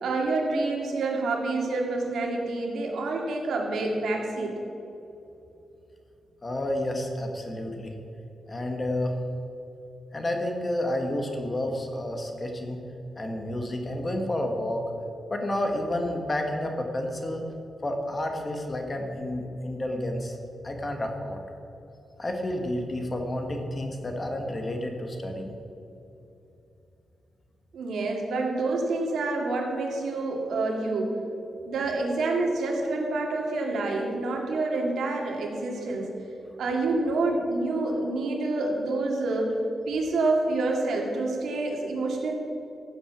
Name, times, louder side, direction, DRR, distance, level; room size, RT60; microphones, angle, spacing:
voice 1, 0.0-4.6 27.7-31.2 31.7-36.1 36.6-39.6 39.9-42.3, right 2 dB, 80° right, 0 dB, 2.4 m, -27 dB
voice 2, 6.4-7.9 8.5-9.2 10.1-12.8 13.2-14.8 15.3-17.4 17.8-20.4 20.6-21.4 22.2-25.5, left 1 dB, 25° left, 3 dB, 1.6 m, -30 dB
16.0 x 7.8 x 6.2 m, 2.9 s
wide cardioid pair, 140°, 0 cm